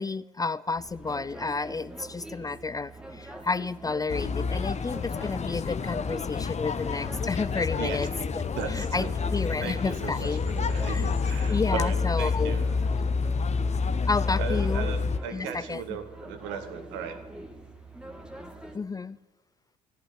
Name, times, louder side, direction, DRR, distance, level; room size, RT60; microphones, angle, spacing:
voice 1, 0.0-8.1 8.7-9.1 9.3-10.5 10.9-11.1 11.5-12.6 14.1-14.9 15.3-15.8 18.7-19.2, left 4 dB, 20° left, 18 dB, 0.4 m, -31 dB
sound 1, 0.8-18.8, right 1 dB, 5° right, 1.9 m, -44 dB
sound 2, 4.1-15.2, left 5 dB, 35° left, 0.9 m, -28 dB
voice 2, 8.5-9.1 9.6-12.7 14.4-17.2, right 8 dB, 70° right, 8 dB, 1.6 m, -37 dB
14.5 x 8.6 x 8.2 m, 1.2 s
hypercardioid pair, 55°, 20 cm